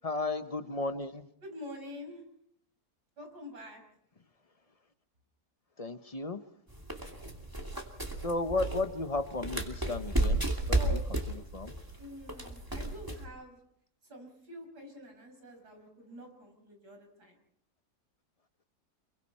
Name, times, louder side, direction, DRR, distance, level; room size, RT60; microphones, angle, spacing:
voice 1, 0.0-1.3 5.8-6.4 8.2-11.8, left 2 dB, 30° left, 9 dB, 0.7 m, -34 dB
voice 2, 1.4-2.2 3.2-3.8 10.7-11.0 12.0-13.6 14.0-17.4, equal, 85° right, 3 dB, 6.7 m, -46 dB
sound 1, 6.7-13.3, right 1 dB, 10° right, 2.8 m, -33 dB
28.5 x 23.0 x 4.3 m, 0.72 s
omnidirectional pair, 1.7 m